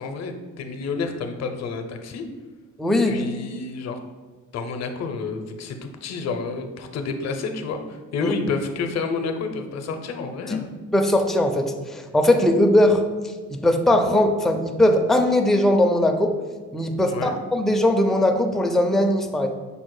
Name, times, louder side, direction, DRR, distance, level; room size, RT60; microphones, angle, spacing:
voice 1, 0.0-2.2 3.0-4.0 4.5-7.8 8.1-10.7 17.1-17.3, left 4 dB, 60° left, 6 dB, 0.6 m, -29 dB
voice 2, 2.8-3.2 8.2-8.3 10.5-10.6 10.9-13.0 13.5-16.4 16.7-19.5, left 1 dB, ahead, 4 dB, 0.4 m, -19 dB
5.3 x 2.1 x 4.7 m, 1.4 s
cardioid pair, 90°, 30 cm